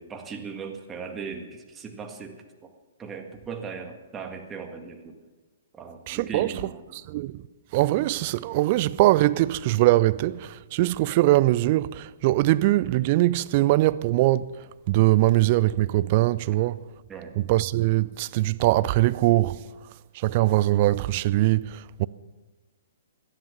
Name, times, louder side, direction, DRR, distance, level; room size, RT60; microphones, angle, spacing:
voice 1, 0.0-2.7 3.0-5.2 5.7-6.8 17.1-17.4, right 5 dB, 15° right, 1.8 m, -38 dB
voice 2, 6.1-6.5 7.1-7.4 7.7-14.5 14.9-16.8 17.4-19.7 20.1-22.1, right 17 dB, 40° right, 0.4 m, -22 dB
17.5 x 12.0 x 6.0 m
figure-of-eight pair, 120°, 0 cm